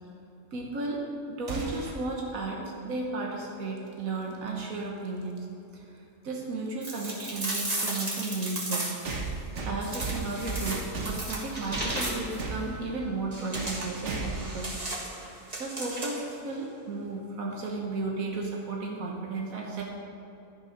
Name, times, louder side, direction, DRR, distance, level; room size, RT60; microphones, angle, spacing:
voice 1, 0.5-5.5 5.7-8.9 9.6-14.7 15.6-19.8, right 3 dB, 85° right, -1 dB, 1.5 m, -34 dB
sound 1, 1.5-2.0 4.2-4.3 5.4-5.5 9.0-11.4 11.7-12.6 13.5-13.8 14.0-14.5, right 3 dB, 60° right, 1.4 m, -34 dB
sound 2, 6.8-9.2 9.8-12.4 13.3-16.3, right 2 dB, 30° right, 1.7 m, -35 dB
11.5 x 7.3 x 5.1 m, 2.8 s
omnidirectional pair, 1.4 m